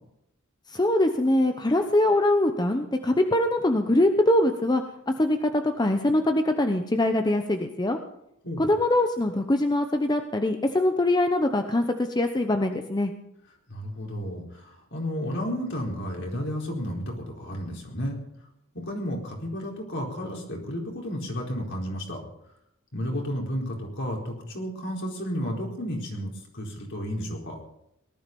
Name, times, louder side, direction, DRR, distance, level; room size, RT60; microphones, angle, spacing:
voice 1, 0.7-8.0 8.6-13.1, left 1 dB, 20° left, 6 dB, 0.9 m, -23 dB
voice 2, 13.7-18.2 18.7-22.2 22.9-27.6, equal, 60° left, -1 dB, 4.5 m, -32 dB
18.5 x 12.5 x 5.4 m, 0.79 s
head